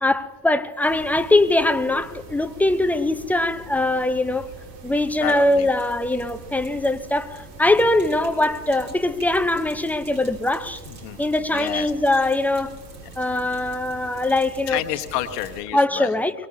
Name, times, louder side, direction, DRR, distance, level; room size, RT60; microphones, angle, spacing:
voice 1, 0.0-4.5 4.8-10.8 11.2-12.8 13.2-14.8 15.7-16.3, left 2 dB, 5° left, 0.8 m, -21 dB
sound 1, 0.8-15.6, right 2 dB, 75° right, 2.0 m, -43 dB
Sink (filling or washing), 4.8-15.6, right 2 dB, 45° right, 5.4 m, -50 dB
voice 2, 5.2-5.7 10.9-11.2 11.5-11.9 14.7-16.1, left 14 dB, 75° left, 1.2 m, -29 dB
23.5 x 21.0 x 2.8 m
hypercardioid pair, 65°, 48 cm